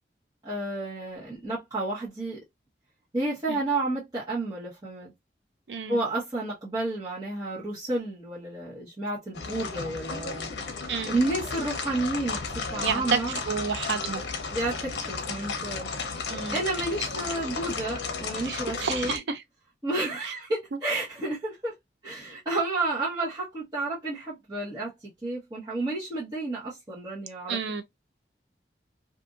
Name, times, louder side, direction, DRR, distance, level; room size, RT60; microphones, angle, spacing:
voice 1, 0.4-2.4 3.1-5.1 5.9-10.5 11.1-13.4 14.5-15.9 16.5-19.2 19.8-21.7 22.0-27.8, right 2 dB, 20° right, 1.1 m, -31 dB
voice 2, 5.7-6.0 10.9-11.2 12.8-14.2 16.3-16.6 18.4-19.4 20.2-20.3 20.7-20.8 27.5-27.8, right 5 dB, 80° right, 0.5 m, -30 dB
sound 1, 9.3-19.2, left 4 dB, 85° left, 0.7 m, -34 dB
2.6 x 2.6 x 2.4 m
head